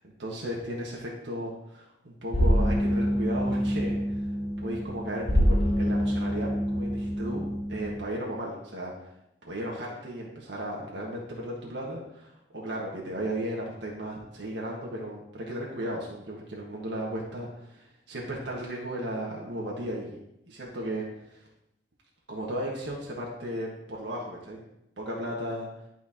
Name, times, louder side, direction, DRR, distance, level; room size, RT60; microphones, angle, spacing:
voice 1, 0.2-4.0 4.6-8.9 9.4-20.2 20.5-21.0 22.3-24.6 25.0-25.7, equal, 85° right, -3 dB, 1.5 m, -35 dB
sound 1, 2.3-8.0, equal, 40° left, 1.4 m, -26 dB
11.0 x 4.5 x 2.9 m, 0.81 s
head